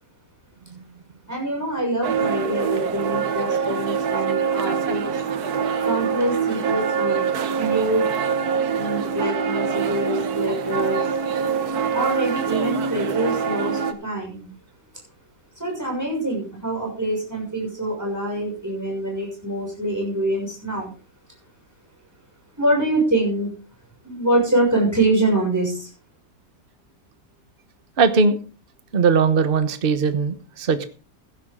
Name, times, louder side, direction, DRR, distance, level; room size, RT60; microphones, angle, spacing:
voice 1, 1.3-5.1 5.8-7.3 7.6-8.1 8.7-11.0 11.9-14.5 15.6-20.9 22.6-23.5 24.0-25.9, right 1 dB, 10° right, -1 dB, 6.4 m, -25 dB
sound 1, 2.0-13.9, right 6 dB, 65° right, 1.6 m, -24 dB
voice 2, 28.0-28.4 28.9-30.9, right 5 dB, 35° right, 10 dB, 1.2 m, -19 dB
15.5 x 11.0 x 3.8 m, 0.36 s
omnidirectional pair, 1.8 m